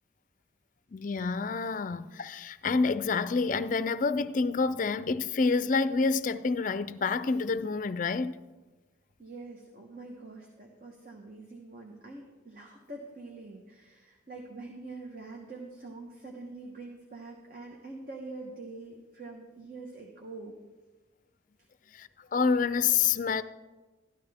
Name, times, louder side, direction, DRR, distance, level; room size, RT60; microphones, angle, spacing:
voice 1, 0.9-8.4 21.9-23.4, left 4 dB, 40° left, 0.4 m, -28 dB
voice 2, 9.2-20.6, right 3 dB, 45° right, 1.1 m, -45 dB
13.0 x 11.5 x 3.5 m
head